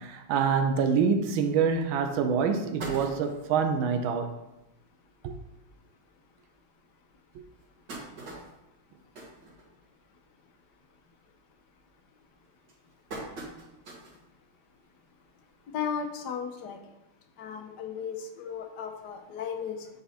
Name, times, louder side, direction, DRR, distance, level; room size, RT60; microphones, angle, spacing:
voice 1, 0.0-4.3 5.2-5.3 7.3-7.4, right 6 dB, 90° right, 1.5 m, -26 dB
sound 1, 1.7-1.8 2.2-2.3 2.5-3.6 4.2-4.3 4.6-4.7 5.0-5.2 5.9-6.0 6.5-6.6 7.3-10.2 10.5-10.9 11.2-11.6 12.2-14.3 14.7-14.8 16.0-16.1, right 2 dB, 55° right, 2.5 m, -43 dB
voice 2, 15.7-16.8 17.4-19.9, left 7 dB, 65° left, 1.2 m, -35 dB
9.0 x 4.0 x 4.2 m
omnidirectional pair, 2.2 m